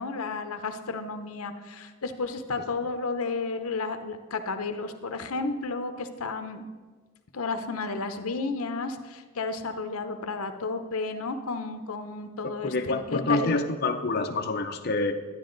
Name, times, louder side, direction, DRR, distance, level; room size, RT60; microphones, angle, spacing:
voice 1, 0.0-6.6 7.3-13.5, left 3 dB, 85° left, 8 dB, 0.8 m, -32 dB
voice 2, 12.4-15.1, left 3 dB, 45° left, 4 dB, 0.6 m, -27 dB
12.0 x 9.9 x 3.9 m, 1.4 s
head